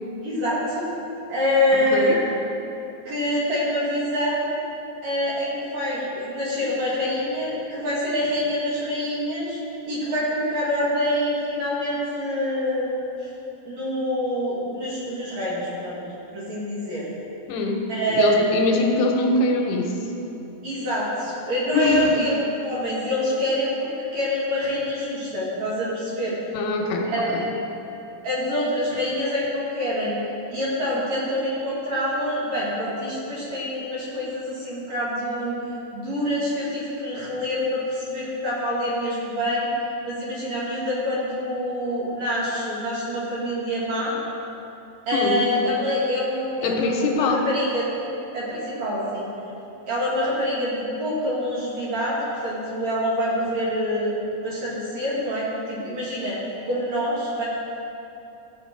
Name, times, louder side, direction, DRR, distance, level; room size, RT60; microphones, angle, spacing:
voice 1, 0.2-0.8 1.3-2.2 3.0-4.5 5.0-9.6 9.9-13.3 13.6-16.0 16.3-17.1 17.9-18.4 20.6-26.4 27.1-27.4 28.2-30.2 30.5-35.6 35.9-39.7 40.0-44.2 45.1-46.9 47.2-47.9 48.3-49.3 49.9-52.2 52.4-56.4 56.6-57.4, equal, 50° right, -7 dB, 3.2 m, -26 dB
voice 2, 1.7-2.2 17.5-20.0 21.7-22.3 26.5-27.5 45.1-45.5 46.6-47.5, left 2 dB, 85° left, 2 dB, 3.0 m, -23 dB
14.5 x 8.0 x 4.6 m, 2.9 s
omnidirectional pair, 4.6 m